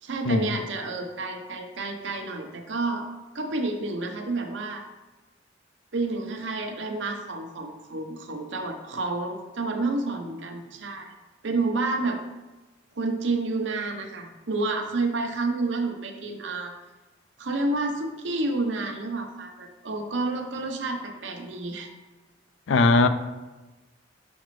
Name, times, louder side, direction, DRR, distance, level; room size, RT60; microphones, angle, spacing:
voice 1, 0.0-3.1 3.3-4.8 5.9-11.1 11.4-12.2 13.0-16.7 17.4-21.9, right 3 dB, 75° right, 3 dB, 0.8 m, -29 dB
voice 2, 22.7-23.1, left 3 dB, 80° left, 10 dB, 0.4 m, -19 dB
6.2 x 5.0 x 3.1 m, 1.1 s
head